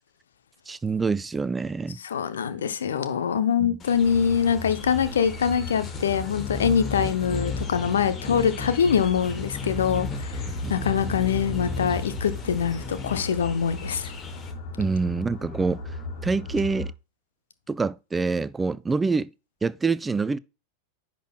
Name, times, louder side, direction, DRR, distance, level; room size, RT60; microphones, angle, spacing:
voice 1, 0.7-2.0 3.6-3.8 10.4-10.7 14.8-15.8 16.2-16.9 17.7-19.3 19.6-20.4, right 4 dB, 10° right, 0.3 m, -26 dB
voice 2, 2.0-10.4 10.7-14.1, left 7 dB, 65° left, 0.8 m, -24 dB
sound 1, 3.8-14.5, left 3 dB, 25° left, 1.1 m, -36 dB
sound 2, 4.0-16.9, left 2 dB, 45° left, 2.1 m, -36 dB
10.0 x 6.2 x 2.2 m
figure-of-eight pair, 90°, 0 cm